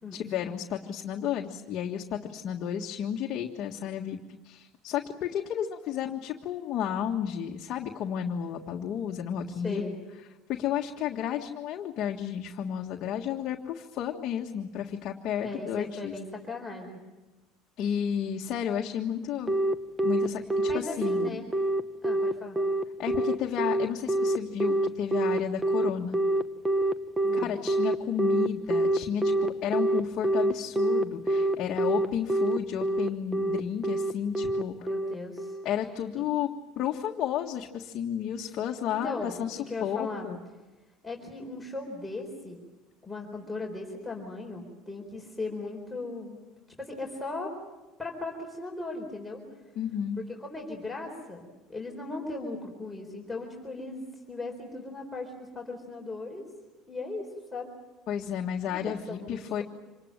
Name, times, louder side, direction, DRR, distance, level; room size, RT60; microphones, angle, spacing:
voice 1, 0.1-4.2 4.4-9.9 10.5-16.1 17.8-19.6 20.0-21.4 23.0-26.2 27.4-29.3 29.6-34.9 35.6-36.5 36.7-40.4 49.7-50.2 58.1-59.6, left 9 dB, 50° left, 1 dB, 1.6 m, -32 dB
voice 2, 9.5-9.9 15.4-17.0 20.6-21.5 22.0-22.6 27.2-27.5 34.8-35.6 36.2-36.3 38.9-40.3 41.0-42.6 43.0-46.4 46.8-47.5 48.0-49.4 50.3-56.4 56.9-57.7 58.7-59.6, left 2 dB, 5° left, -1 dB, 4.3 m, -38 dB
Telephone, 19.5-35.6, right 1 dB, 10° right, 1.0 m, -26 dB
26.5 x 20.0 x 9.0 m, 1.1 s
cardioid pair, 135°, 0 cm